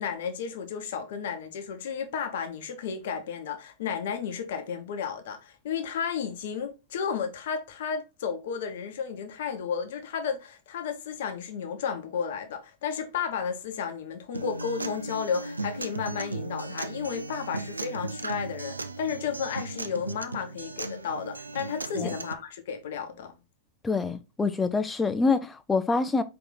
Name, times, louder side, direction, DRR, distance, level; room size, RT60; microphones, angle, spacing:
voice 1, 0.0-23.3, left 7 dB, 55° left, 0.9 m, -33 dB
Acoustic guitar, 14.3-22.3, right 2 dB, 80° right, 0.4 m, -36 dB
voice 2, 23.8-26.2, left 4 dB, 15° left, 0.5 m, -26 dB
4.8 x 2.9 x 3.9 m
figure-of-eight pair, 90°, 0 cm